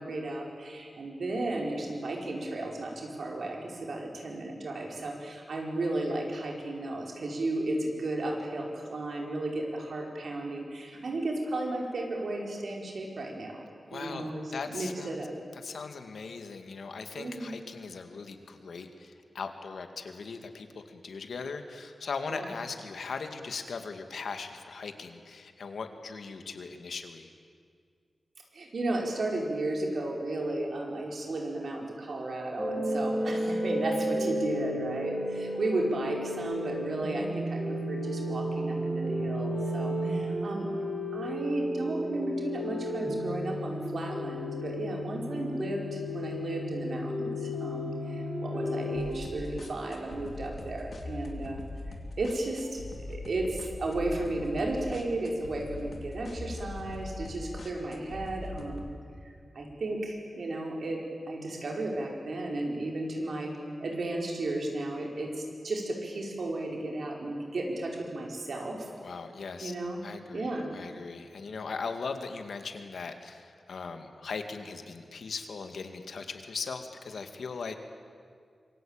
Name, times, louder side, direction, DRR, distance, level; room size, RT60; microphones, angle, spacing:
voice 1, 0.0-13.6 13.9-15.3 17.1-17.5 22.3-22.5 28.5-40.7 41.1-51.6 52.2-58.9 59.5-68.9 69.6-70.0 70.3-70.7, right 2 dB, 60° right, 0 dB, 5.0 m, -34 dB
voice 2, 13.9-15.2 15.6-27.3 69.0-69.7 70.0-77.7, left 4 dB, 80° left, 7 dB, 2.2 m, -39 dB
sound 1, 32.6-49.0, equal, 15° right, 4.9 m, -33 dB
sound 2, 48.9-58.9, left 2 dB, 55° left, 3.0 m, -41 dB
26.5 x 23.0 x 9.0 m, 2.1 s
wide cardioid pair, 165°, 0 cm